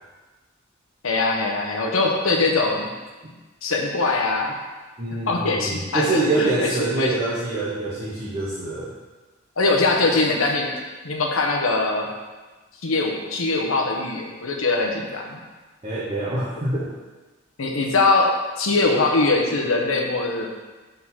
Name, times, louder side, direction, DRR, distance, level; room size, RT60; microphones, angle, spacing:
voice 1, 1.0-2.9 3.6-4.6 5.3-6.7 7.0-7.1 9.6-10.7 11.0-12.1 12.8-15.4 17.6-18.3 18.6-20.5, left 3 dB, 85° left, 1 dB, 0.9 m, -22 dB
voice 2, 5.0-8.9 15.8-16.9, right 2 dB, 30° right, -8 dB, 1.0 m, -25 dB
4.9 x 4.0 x 5.5 m, 1.3 s
head